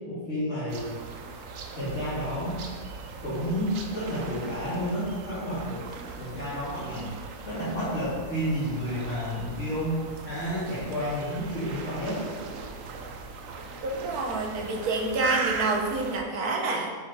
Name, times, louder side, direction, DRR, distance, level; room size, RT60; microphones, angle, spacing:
voice 1, 0.1-0.9 1.7-2.6 3.2-5.8 6.2-7.1 7.5-12.2, equal, 50° left, -14 dB, 3.5 m, -30 dB
sound 1, 0.7-16.2, right 4 dB, 65° right, 1.2 m, -39 dB
voice 2, 13.8-16.9, right 3 dB, 85° right, 2 dB, 1.7 m, -28 dB
8.5 x 6.9 x 4.3 m, 1.5 s
omnidirectional pair, 1.6 m